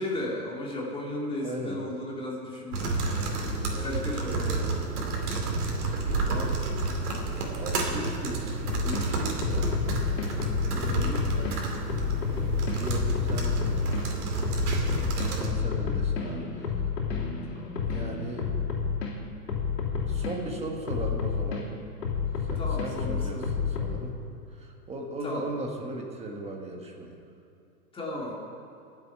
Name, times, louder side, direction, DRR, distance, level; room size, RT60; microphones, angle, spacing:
voice 1, 0.0-4.6 10.4-11.7 15.1-15.7 17.5-18.1 22.5-23.5 25.2-25.5 27.9-28.3, left 1 dB, 10° left, -3 dB, 2.6 m, -36 dB
voice 2, 1.4-1.8 4.3-4.7 6.1-6.6 7.6-9.7 12.7-14.0 15.3-16.9 17.9-18.5 20.1-21.7 22.4-24.2 24.5-27.2, right 1 dB, 15° right, 2 dB, 1.5 m, -37 dB
sound 1, 2.7-15.5, right 3 dB, 70° right, 2.7 m, -30 dB
sound 2, 8.6-9.0 9.4-11.5 11.9-14.0 14.4-19.1 19.5-20.4 20.9-21.6 22.0-23.9, left 6 dB, 85° left, 2.9 m, -29 dB
23.0 x 7.7 x 4.7 m, 2.6 s
hypercardioid pair, 135°, 47 cm